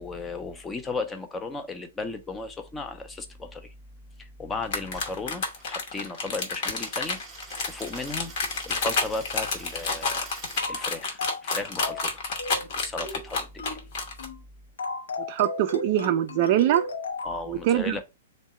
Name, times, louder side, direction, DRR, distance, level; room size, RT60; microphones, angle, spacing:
voice 1, 0.0-3.7 4.2-7.2 7.7-8.3 8.6-10.3 10.7-12.2 12.8-13.8 17.2-18.0, left 3 dB, 15° left, 0.6 m, -35 dB
sound 1, 4.6-14.2, left 4 dB, 45° left, 0.9 m, -29 dB
Coin (dropping), 4.8-10.6, right 3 dB, 15° right, 0.8 m, -47 dB
sound 2, 10.6-10.9 11.2-11.5 11.8-12.1 12.4-12.7 13.0-13.3 13.6-13.9 14.2-14.4 14.8-17.4, left 3 dB, 60° left, 0.7 m, -35 dB
voice 2, 15.3-16.9 17.5-18.0, right 12 dB, 40° right, 0.3 m, -23 dB
3.5 x 2.1 x 4.1 m
figure-of-eight pair, 110°, 0 cm